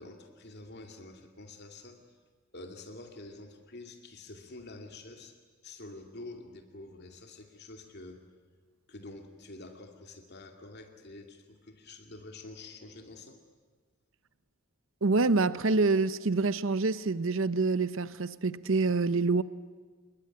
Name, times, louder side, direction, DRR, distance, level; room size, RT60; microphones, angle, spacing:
voice 1, 0.0-2.0 2.5-5.4 5.6-8.3 8.9-13.4, left 2 dB, 50° left, 2.5 m, -47 dB
voice 2, 15.0-19.4, right 3 dB, 60° right, 0.8 m, -26 dB
27.5 x 22.0 x 9.9 m
head